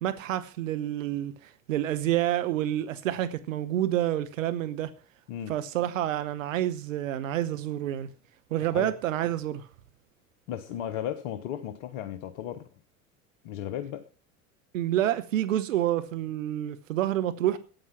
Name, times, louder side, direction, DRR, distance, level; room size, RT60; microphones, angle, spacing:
voice 1, 0.0-4.9 5.5-8.1 8.5-9.7 14.7-17.6, right 12 dB, 70° right, 1.0 m, -28 dB
voice 2, 8.6-9.0 10.5-12.6 13.4-14.1, left 10 dB, 60° left, 1.2 m, -35 dB
12.5 x 9.1 x 5.8 m
figure-of-eight pair, 80°, 40 cm